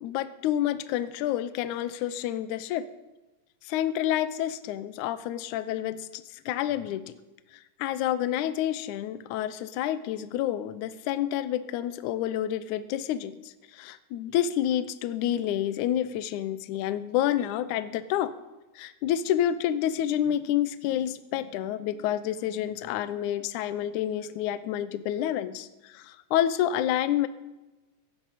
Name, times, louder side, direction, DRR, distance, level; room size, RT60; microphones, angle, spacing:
voice 1, 0.0-2.9 3.7-7.1 7.5-13.4 13.7-18.3 18.8-27.3, left 11 dB, 75° left, 12 dB, 1.9 m, -29 dB
16.5 x 15.0 x 4.2 m, 1.1 s
omnidirectional pair, 4.0 m